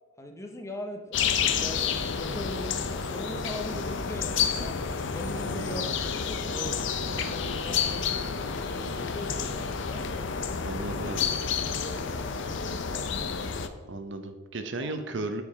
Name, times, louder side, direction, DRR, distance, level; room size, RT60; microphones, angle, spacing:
voice 1, 0.2-4.9 5.1-5.9 6.3-8.3 8.7-10.0 11.7-13.7 14.1-14.2 14.8-14.9, equal, 15° left, 4 dB, 0.8 m, -41 dB
sound 1, 1.1-13.7, left 6 dB, 60° left, 0.6 m, -30 dB
voice 2, 5.5-6.0 10.6-11.3 13.8-15.4, right 2 dB, 60° right, 7 dB, 0.8 m, -35 dB
8.7 x 4.8 x 4.8 m, 1.4 s
head